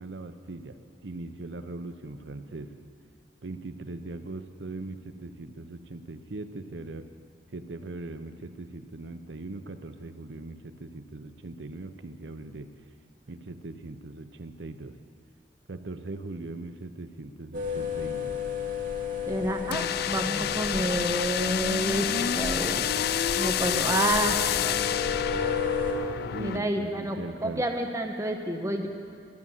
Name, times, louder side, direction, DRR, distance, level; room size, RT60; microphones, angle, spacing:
voice 1, 0.0-2.7 3.4-7.0 7.5-12.7 13.3-15.0 15.7-18.3 20.4-20.5 26.3-27.6, right 2 dB, 90° right, 9 dB, 0.8 m, -40 dB
sound 1, 17.5-25.9, left 5 dB, 50° right, 2.3 m, -33 dB
voice 2, 19.3-22.1 22.3-22.8 23.4-24.9 26.4-28.9, right 1 dB, 20° right, 3 dB, 1.1 m, -29 dB
sound 2, 19.7-26.6, left 10 dB, 60° left, 0.3 m, -28 dB
13.0 x 9.6 x 7.3 m, 2.2 s
head